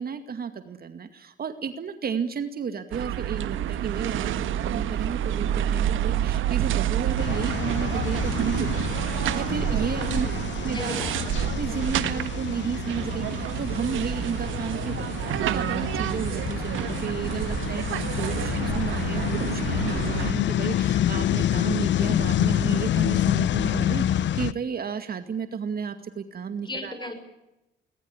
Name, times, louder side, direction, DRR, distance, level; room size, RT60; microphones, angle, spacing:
voice 1, 0.0-10.3 10.6-11.0 11.6-27.1, right 6 dB, 50° right, 9 dB, 2.3 m, -33 dB
sound 1, 2.9-20.3, right 10 dB, 80° right, 1.6 m, -28 dB
sound 2, 7.2-24.5, left 11 dB, 65° left, 0.8 m, -28 dB
voice 2, 10.0-11.4 26.6-27.1, left 2 dB, 25° left, 9 dB, 6.3 m, -37 dB
21.0 x 20.0 x 9.8 m, 0.92 s
cardioid pair, 90°, 20 cm